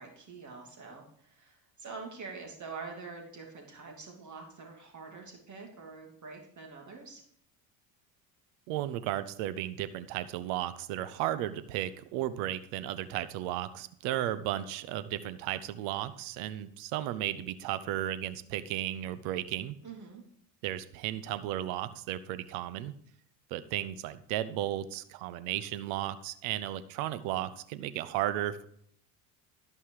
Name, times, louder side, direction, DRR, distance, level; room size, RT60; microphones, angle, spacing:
voice 1, 0.0-7.2 19.8-20.2, right 4 dB, 35° right, 1 dB, 2.9 m, -45 dB
voice 2, 8.7-19.8 20.6-22.9 23.5-28.7, right 13 dB, 75° right, 14 dB, 0.9 m, -34 dB
13.5 x 5.5 x 4.8 m, 0.66 s
supercardioid pair, 85°, 49 cm